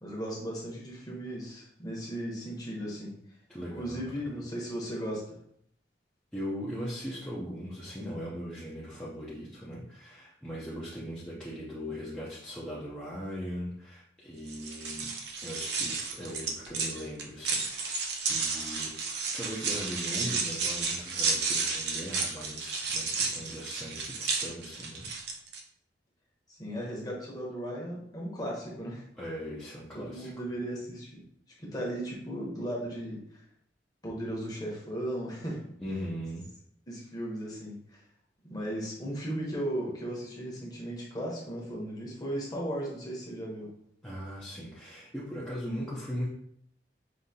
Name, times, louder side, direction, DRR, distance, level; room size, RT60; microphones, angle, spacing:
voice 1, 0.0-3.1 3.8-5.4 26.5-29.0 29.9-31.2 31.6-33.4 34.0-35.7 36.9-38.0 38.4-43.7, right 1 dB, 20° left, -3 dB, 1.1 m, -36 dB
voice 2, 3.5-4.4 6.3-15.1 15.4-17.9 18.3-19.0 19.3-25.1 29.2-30.3 35.8-36.5 44.0-46.3, equal, 5° left, -8 dB, 0.7 m, -39 dB
sound 1, 14.5-25.6, right 4 dB, 65° right, 0.6 m, -32 dB
5.1 x 2.8 x 2.8 m, 0.69 s
head